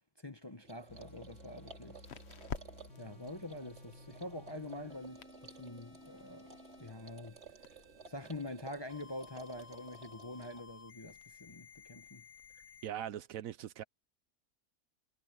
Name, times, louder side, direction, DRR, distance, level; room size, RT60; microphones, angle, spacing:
voice 1, 0.2-2.0 3.0-6.5 6.8-7.4 8.1-12.2, left 1 dB, 20° left, 0.8 m, -45 dB
sound 1, 0.6-10.6, right 4 dB, 45° right, 2.6 m, -56 dB
sound 2, 0.7-13.1, left 7 dB, 50° left, 1.1 m, -54 dB
sound 3, 0.9-12.9, left 2 dB, 80° left, 8.0 m, -56 dB
voice 2, 12.8-13.8, right 11 dB, 70° right, 1.0 m, -41 dB
omnidirectional pair, 1.6 m